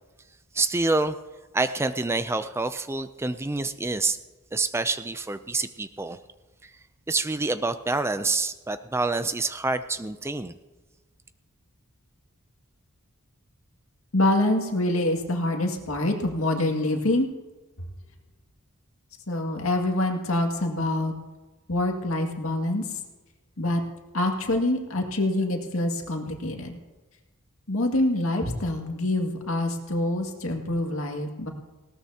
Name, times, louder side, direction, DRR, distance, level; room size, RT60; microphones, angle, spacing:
voice 1, 0.5-1.2 1.5-4.2 4.5-6.2 6.6-6.7 7.1-10.5, right 3 dB, 10° right, 11 dB, 0.4 m, -27 dB
voice 2, 14.1-17.3 19.3-21.1 21.7-23.0 23.6-23.8 24.1-26.8 27.7-31.5, left 1 dB, 70° left, 3 dB, 2.1 m, -25 dB
19.5 x 17.5 x 2.9 m, 1.2 s
head